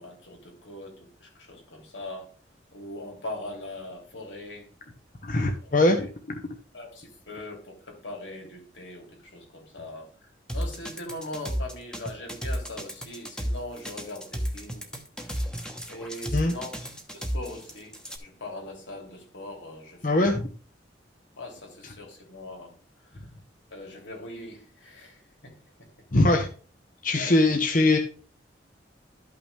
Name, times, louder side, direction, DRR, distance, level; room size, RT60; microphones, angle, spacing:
voice 1, 0.0-2.3 2.7-4.7 5.6-6.1 6.7-14.9 15.3-15.5 15.9-16.7 17.1-20.4 21.4-22.8 23.0-23.2 23.7-26.1 27.1-27.3, left 1 dB, 85° left, 3.1 m, -41 dB
voice 2, 5.2-6.1 16.3-16.5 20.0-20.4 26.1-26.5 27.0-28.0, left 2 dB, 45° left, 0.9 m, -21 dB
sound 1, 10.5-18.2, equal, 5° left, 1.1 m, -33 dB
12.0 x 5.8 x 3.4 m
head